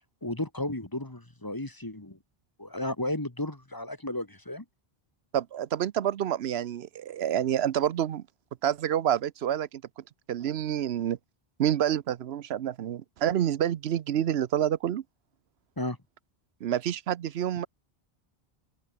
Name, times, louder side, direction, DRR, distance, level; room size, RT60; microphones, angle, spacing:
voice 1, 0.0-2.2 2.6-4.7 15.8-16.0 17.6-17.7, left 1 dB, 20° left, 1.6 m, -34 dB
voice 2, 5.3-8.2 8.6-9.8 10.3-11.2 11.6-15.0 16.6-17.7, right 10 dB, 85° right, 1.0 m, -28 dB
open air
omnidirectional pair, 1.0 m